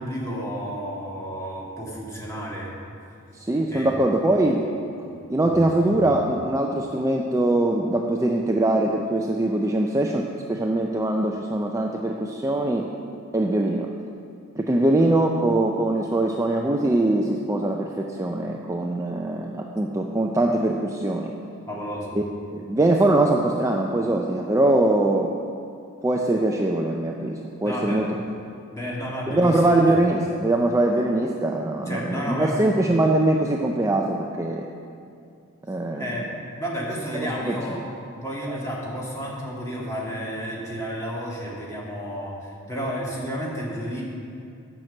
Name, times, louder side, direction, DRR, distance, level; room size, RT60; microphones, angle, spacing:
voice 1, 0.0-2.7 3.7-3.9 21.7-22.2 27.6-28.0 28.7-29.8 31.9-32.7 36.0-36.3 36.6-37.8 38.2-44.0, equal, 15° left, -5 dB, 2.0 m, -31 dB
voice 2, 3.3-4.7 5.3-12.9 13.3-13.9 14.6-21.3 22.1-22.2 22.5-25.4 26.0-28.1 29.3-34.6 35.7-36.1 37.1-37.6, right 1 dB, 15° right, 1 dB, 0.4 m, -22 dB
9.0 x 5.9 x 7.6 m, 2.5 s
head